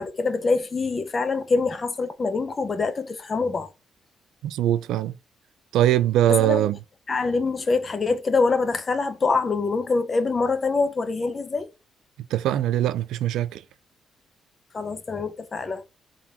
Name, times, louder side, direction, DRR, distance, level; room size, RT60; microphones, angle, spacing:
voice 1, 0.0-3.7 6.4-6.7 7.1-11.7 14.7-15.8, left 4 dB, 35° left, 0.9 m, -25 dB
voice 2, 4.4-5.1 5.7-6.8 12.3-13.6, right 12 dB, 85° right, 0.4 m, -22 dB
3.6 x 3.6 x 2.8 m
cardioid pair, 90°, 0 cm